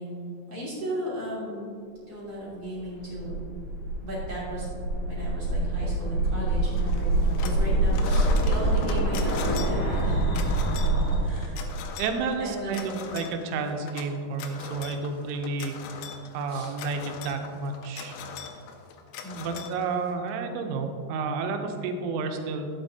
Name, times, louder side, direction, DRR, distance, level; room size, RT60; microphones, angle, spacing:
voice 1, 0.0-1.7 2.0-3.4 4.0-4.7 5.1-11.7 12.4-12.9 16.5-16.7 19.2-19.6, right 1 dB, 40° right, -9 dB, 2.7 m, -36 dB
sound 1, 2.8-11.1, right 2 dB, 50° left, 2.2 m, -25 dB
sound 2, 6.8-7.6 7.9-20.3, left 6 dB, 90° left, 3.2 m, -40 dB
voice 2, 12.0-15.8 16.3-18.2 19.4-22.7, right 4 dB, 90° right, 5 dB, 3.3 m, -31 dB
12.0 x 8.0 x 2.8 m, 2.4 s
omnidirectional pair, 5.5 m